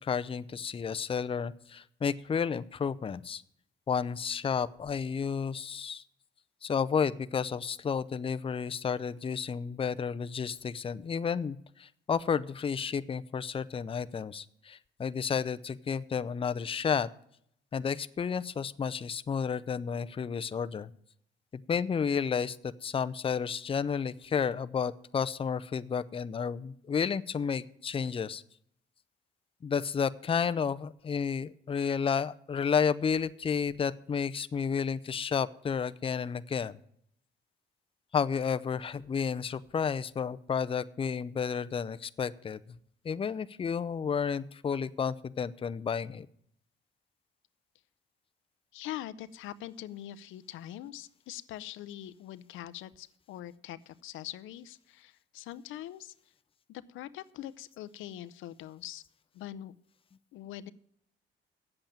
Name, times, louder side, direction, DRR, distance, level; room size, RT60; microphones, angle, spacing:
voice 1, 0.0-3.4 3.9-6.0 6.6-17.1 17.7-20.9 21.7-22.6 22.8-28.4 29.6-36.7 38.1-42.6 43.0-46.3, left 6 dB, 30° left, 13 dB, 0.5 m, -31 dB
voice 2, 48.7-56.1 56.7-59.0 59.3-59.7 60.3-60.7, left 12 dB, 85° left, 16 dB, 0.5 m, -43 dB
8.7 x 7.8 x 8.9 m, 0.69 s
cardioid pair, 90°, 20 cm